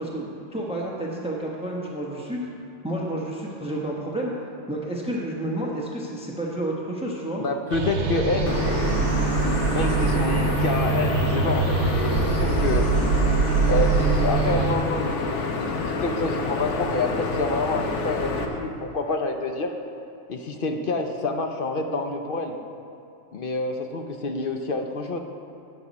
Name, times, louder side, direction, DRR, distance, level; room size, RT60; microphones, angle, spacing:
voice 1, 0.0-2.5 2.8-4.3 4.7-7.4, right 1 dB, 5° right, -2 dB, 1.1 m, -30 dB
voice 2, 7.4-8.6 9.7-12.9 13.7-19.7 20.3-22.6 23.3-25.2, left 3 dB, 55° left, 4 dB, 0.7 m, -28 dB
sound 1, 7.7-14.8, right 4 dB, 65° right, 1.2 m, -23 dB
sound 2, 8.5-18.5, left 3 dB, 70° left, 1.2 m, -28 dB
10.5 x 9.4 x 4.1 m, 2.8 s
omnidirectional pair, 1.3 m